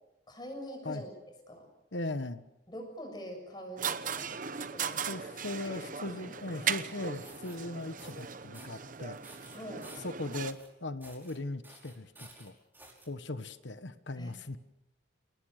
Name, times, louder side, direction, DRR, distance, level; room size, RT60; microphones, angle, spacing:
voice 1, 0.3-1.1 1.5-1.7 2.7-4.4 4.7-5.2 5.6-6.7 9.5-9.9 14.2-14.3, equal, 20° left, 3 dB, 7.0 m, -45 dB
voice 2, 1.9-2.4 5.1-9.2 10.0-12.6 13.1-14.6, left 2 dB, 65° left, 10 dB, 1.2 m, -39 dB
sound 1, 3.8-10.5, right 7 dB, 40° right, 1.0 m, -38 dB
sound 2, 7.0-7.6 8.0-8.3 8.5-8.8 9.2-10.7 11.0-11.4 11.6-13.1, right 2 dB, 10° right, 5.4 m, -53 dB
30.0 x 19.5 x 6.6 m, 0.91 s
head